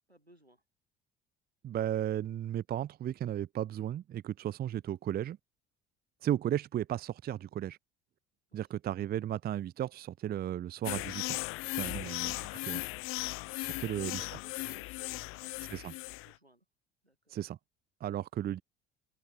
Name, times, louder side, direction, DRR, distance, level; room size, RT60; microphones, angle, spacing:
voice 1, 0.1-0.6 8.5-8.6 13.7-16.6 17.0-17.4, right 1 dB, 90° right, 7.9 m, -58 dB
voice 2, 1.6-5.4 6.2-7.8 8.5-11.4 11.8-12.8 13.6-14.1 15.7-15.9 17.3-17.6 18.0-18.6, right 11 dB, 30° right, 0.6 m, -35 dB
sound 1, 10.8-16.3, left 23 dB, 45° left, 0.5 m, -37 dB
figure-of-eight pair, 55°, 30 cm